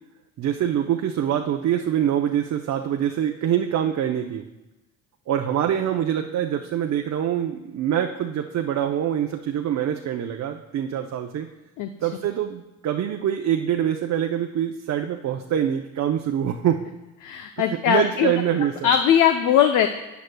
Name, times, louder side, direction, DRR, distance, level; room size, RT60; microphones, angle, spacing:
voice 1, 0.4-4.5 5.3-11.5 12.0-16.8 17.6-18.9, right 10 dB, 50° right, 3 dB, 0.7 m, -25 dB
voice 2, 11.8-12.1 17.2-18.3 18.8-19.9, left 9 dB, 55° left, 7 dB, 0.6 m, -20 dB
14.0 x 9.3 x 2.3 m, 1.0 s
supercardioid pair, 70°, 36 cm